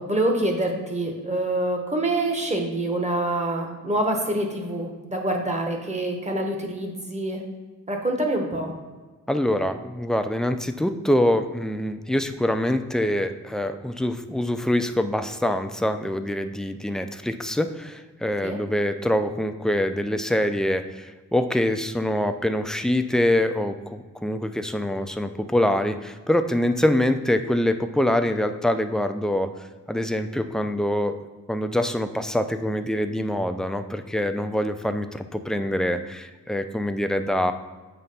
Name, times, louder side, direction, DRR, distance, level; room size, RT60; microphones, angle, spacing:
voice 1, 0.0-7.4 7.9-8.7 18.4-18.6, right 1 dB, 20° right, 2 dB, 1.1 m, -26 dB
voice 2, 9.3-29.5 29.9-31.2 31.5-37.5, left 1 dB, ahead, 8 dB, 0.3 m, -24 dB
7.2 x 3.3 x 5.4 m, 1.3 s
wide cardioid pair, 115°, 32 cm